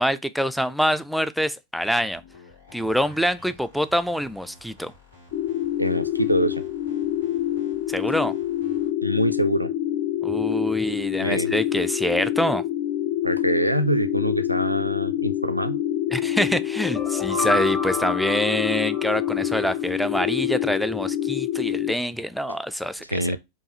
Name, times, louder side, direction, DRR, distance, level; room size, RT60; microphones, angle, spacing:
voice 1, 0.0-2.2 2.7-4.9 7.9-8.3 10.2-12.6 16.1-23.4, equal, ahead, 0.3 m, -25 dB
sound 1, 1.9-8.9, left 2 dB, 80° left, 1.7 m, -52 dB
sound 2, 5.3-21.9, left 12 dB, 55° left, 0.6 m, -26 dB
voice 2, 5.8-6.6 9.0-9.7 11.2-11.5 13.2-15.8 22.5-22.6 23.1-23.4, right 1 dB, 90° right, 0.3 m, -24 dB
sound 3, 16.7-19.8, left 2 dB, 30° left, 1.2 m, -30 dB
4.6 x 2.6 x 2.7 m
figure-of-eight pair, 90°, 0 cm